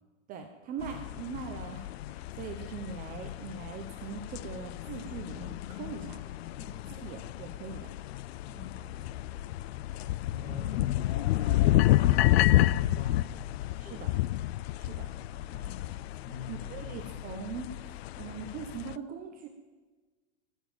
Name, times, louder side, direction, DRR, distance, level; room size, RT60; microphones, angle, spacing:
voice 1, 0.3-6.2 7.0-7.9 13.8-14.1 14.8-15.1 16.5-19.5, right 6 dB, 20° right, 5 dB, 0.8 m, -41 dB
sound 1, 0.8-18.9, left 15 dB, 55° left, 0.5 m, -30 dB
voice 2, 6.5-7.0 8.4-8.8 10.3-13.4 13.6-14.1 15.1-17.1, left 4 dB, 20° left, 5 dB, 1.9 m, -44 dB
21.5 x 7.3 x 8.9 m, 1.3 s
supercardioid pair, 160°, 38 cm